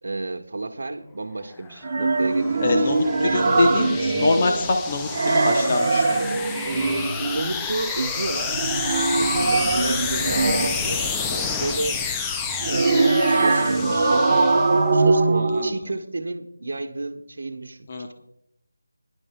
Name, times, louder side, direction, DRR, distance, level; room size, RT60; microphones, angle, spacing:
voice 1, 0.0-2.9 7.2-8.7 9.2-12.0 12.6-18.1, right 2 dB, 55° right, 7 dB, 1.2 m, -31 dB
sound 1, 1.6-15.0, left 5 dB, 5° left, 0.3 m, -30 dB
sound 2, 1.8-4.7 5.0-7.3 8.4-11.0 12.4-15.7, right 3 dB, 30° right, 1.0 m, -22 dB
voice 2, 2.6-6.3 9.4-9.7 15.5-15.7 17.9-18.1, left 3 dB, 25° left, 4 dB, 0.8 m, -24 dB
24.0 x 11.0 x 2.2 m, 0.79 s
figure-of-eight pair, 175°, 0 cm